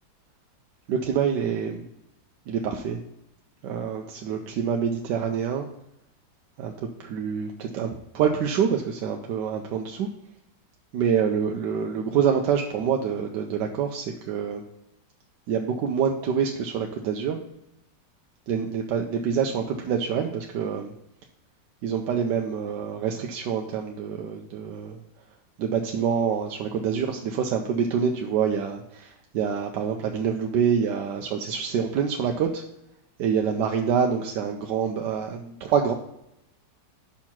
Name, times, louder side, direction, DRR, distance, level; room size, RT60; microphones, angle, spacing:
voice 1, 0.9-1.8 2.5-3.0 3.6-5.7 6.6-10.1 10.9-14.6 15.5-17.4 18.5-20.9 21.8-25.0 25.6-32.6 33.2-35.9, right 7 dB, 80° right, 2 dB, 1.2 m, -26 dB
5.8 x 4.4 x 5.9 m, 0.84 s
omnidirectional pair, 1.9 m